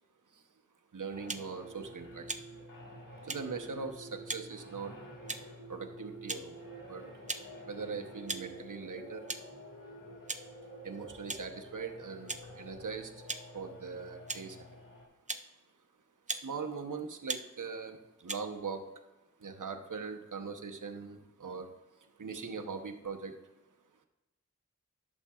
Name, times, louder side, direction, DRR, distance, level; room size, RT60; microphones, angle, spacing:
voice 1, 0.9-2.4 3.3-4.9 5.7-6.6 6.9-7.0 7.7-9.2 10.8-13.1 13.5-14.6 16.3-18.0 18.2-18.8 19.4-21.7 22.2-23.3, right 5 dB, 70° right, 4 dB, 0.9 m, -41 dB
sound 1, 1.1-15.1, right 1 dB, 85° left, 1.7 m, -49 dB
sound 2, 1.3-1.5 2.3-2.4 3.3-3.4 4.3-4.4 5.3-5.5 6.3-6.4 7.3-7.4 8.3-8.5 9.3-9.4 10.3-10.5 11.3-11.4 12.3-12.4 13.3-13.4 14.3-14.4 15.3-15.4 16.3-16.5 17.3-17.4 18.3-18.4, right 3 dB, 25° right, 0.5 m, -37 dB
11.0 x 7.2 x 2.4 m, 1.1 s
wide cardioid pair, 50°, 32 cm